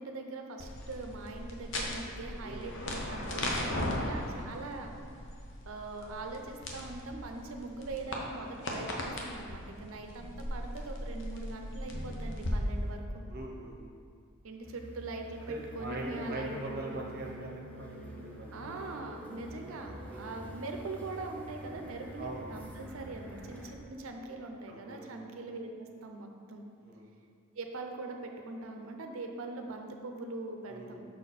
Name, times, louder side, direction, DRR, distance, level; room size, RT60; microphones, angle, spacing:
voice 1, 0.0-4.9 5.6-13.2 14.4-17.0 18.5-26.7 27.6-31.1, right 3 dB, 75° right, 4 dB, 0.6 m, -42 dB
sound 1, 0.6-12.5, left 1 dB, 60° left, 0.8 m, -38 dB
voice 2, 13.3-13.8 15.5-18.8 20.1-20.3 22.2-22.6 24.7-25.1 26.8-27.0 30.7-30.9, right 1 dB, 45° right, -1 dB, 0.9 m, -42 dB
sound 2, 14.6-23.7, equal, 5° left, 0.6 m, -47 dB
6.1 x 4.2 x 4.1 m, 2.3 s
head